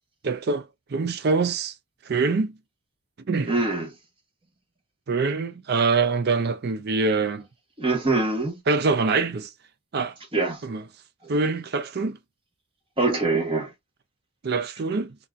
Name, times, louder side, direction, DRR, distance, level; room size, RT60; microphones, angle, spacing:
voice 1, 0.2-1.7 2.1-2.5 3.3-3.5 5.1-7.4 8.7-9.5 9.9-10.1 10.6-10.8 11.3-12.2 14.4-15.2, right 4 dB, 45° right, 0.4 m, -24 dB
voice 2, 3.4-3.9 7.8-8.6 10.3-10.6 11.2-11.3 13.0-13.7, right 3 dB, 25° right, 0.9 m, -24 dB
4.1 x 2.3 x 2.4 m
head